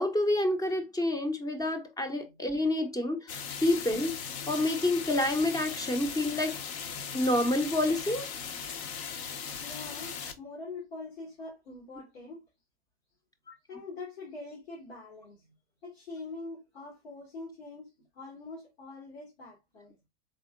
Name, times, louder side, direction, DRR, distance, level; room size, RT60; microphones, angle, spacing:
voice 1, 0.0-4.2 4.5-6.6 7.1-8.3 13.5-13.6, left 1 dB, 10° left, 0.7 m, -28 dB
sound 1, 3.3-10.3, left 6 dB, 50° left, 0.8 m, -38 dB
voice 2, 9.6-12.4 13.7-15.5 15.8-19.9, left 3 dB, 80° left, 1.6 m, -44 dB
3.7 x 3.5 x 2.2 m
hypercardioid pair, 95°, 31 cm